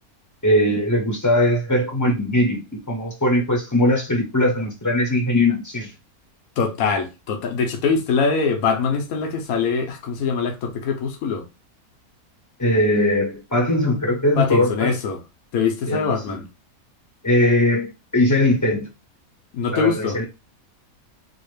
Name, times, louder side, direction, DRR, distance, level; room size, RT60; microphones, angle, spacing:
voice 1, 0.4-5.9 12.6-14.9 15.9-16.4 17.2-18.9 19.7-20.2, left 1 dB, 15° left, 0.7 m, -20 dB
voice 2, 6.6-11.5 14.4-15.2 15.5-16.4 19.5-20.2, left 5 dB, 70° left, 1.3 m, -23 dB
4.3 x 2.5 x 3.2 m
omnidirectional pair, 1.6 m